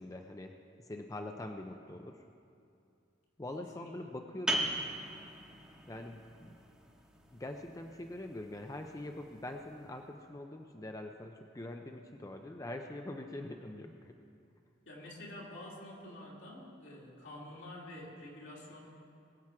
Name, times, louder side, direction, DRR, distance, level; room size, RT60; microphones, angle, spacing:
voice 1, 0.0-2.2 3.4-4.7 5.9-6.5 7.3-14.1, left 1 dB, 20° left, 4 dB, 0.5 m, -44 dB
voice 2, 3.6-4.1 14.9-18.8, left 1 dB, 75° left, -4 dB, 2.9 m, -48 dB
sound 1, 4.5-9.8, right 1 dB, 5° right, 1.1 m, -40 dB
21.0 x 7.3 x 4.8 m, 2.5 s
head